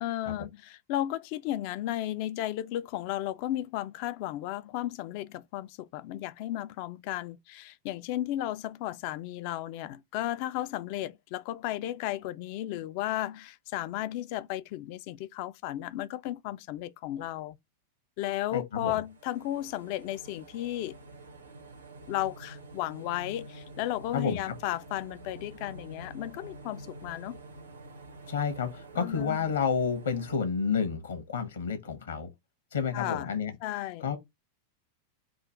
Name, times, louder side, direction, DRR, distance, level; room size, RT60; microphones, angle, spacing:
voice 1, 0.0-17.6 18.2-21.0 22.1-27.4 29.0-29.4 32.9-33.4 33.6-34.1, left 14 dB, 45° left, 0.3 m, -34 dB
voice 2, 18.5-18.9 24.1-24.4 28.3-32.3 32.7-33.5 34.0-34.2, left 6 dB, 70° left, 1.0 m, -30 dB
sound 1, 18.9-30.4, right 2 dB, 80° right, 1.1 m, -48 dB
3.8 x 2.4 x 4.6 m
figure-of-eight pair, 90°, 0 cm